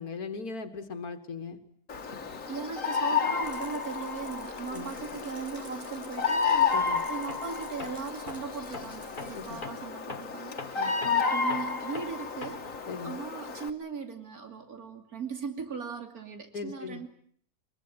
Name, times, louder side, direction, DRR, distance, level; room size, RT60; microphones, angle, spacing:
voice 1, 0.0-1.6 4.7-4.9 6.7-7.0 9.3-9.4 10.7-10.9 12.9-13.2 16.5-17.0, left 4 dB, 80° left, 7 dB, 2.2 m, -38 dB
Bird vocalization bird call bird song, 1.9-13.7, left 5 dB, 60° left, 2.2 m, -31 dB
voice 2, 2.3-12.7 13.0-17.1, right 5 dB, 80° right, 5 dB, 3.2 m, -39 dB
Rattle, 3.4-9.7, equal, 25° right, 4.4 m, -53 dB
Tools, 7.3-7.5 7.8-12.8, left 3 dB, 35° left, 1.6 m, -43 dB
24.5 x 23.0 x 9.0 m, 0.62 s
omnidirectional pair, 1.5 m